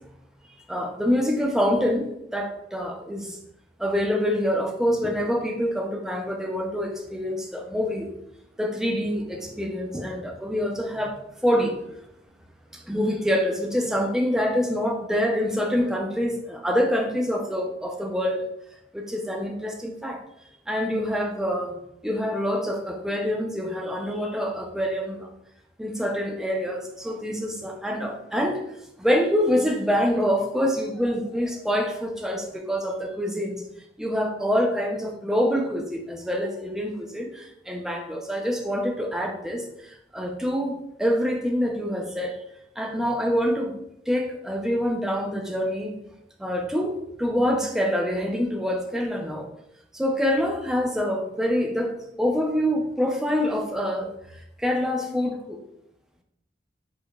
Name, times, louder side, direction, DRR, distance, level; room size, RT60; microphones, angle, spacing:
voice 1, 0.7-3.4 3.8-8.1 8.6-12.0 12.7-18.5 18.9-20.2 20.7-25.3 25.8-28.6 29.0-33.6 34.0-42.4 42.8-43.8 44.1-46.0 46.4-49.5 49.9-54.1 54.6-55.6, equal, 5° right, 2 dB, 0.3 m, -26 dB
4.6 x 2.1 x 2.2 m, 0.81 s
head